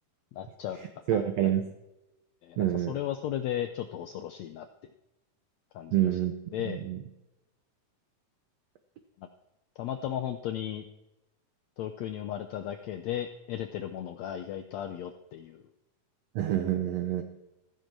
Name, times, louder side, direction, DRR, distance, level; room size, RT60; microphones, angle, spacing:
voice 1, 0.3-0.8 1.1-1.2 2.4-4.7 5.7-6.0 6.5-6.8 9.2-9.3 9.8-10.9 11.8-15.6, left 11 dB, 90° left, 7 dB, 1.5 m, -35 dB
voice 2, 1.1-1.6 2.6-3.0 5.9-6.3 6.6-7.0 16.3-17.2, right 11 dB, 75° right, 7 dB, 1.5 m, -27 dB
15.0 x 14.5 x 4.6 m, 0.97 s
omnidirectional pair, 4.1 m